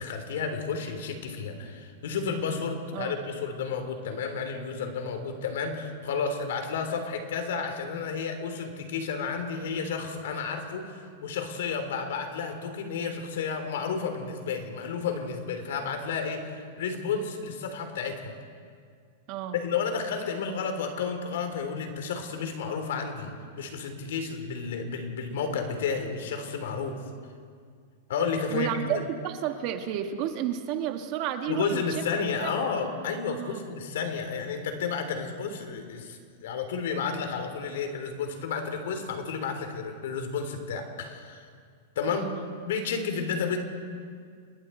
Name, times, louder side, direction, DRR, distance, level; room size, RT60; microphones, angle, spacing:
voice 1, 0.0-18.3 19.5-27.0 28.1-29.0 31.5-41.4 41.9-42.3 42.7-43.6, left 5 dB, 70° left, 6 dB, 3.3 m, -31 dB
voice 2, 19.3-19.6 28.5-31.8 32.4-32.5 33.3-33.6 42.1-42.5, right 10 dB, 40° right, 6 dB, 1.5 m, -31 dB
29.5 x 21.0 x 4.5 m, 2.1 s
supercardioid pair, 160°, 0 cm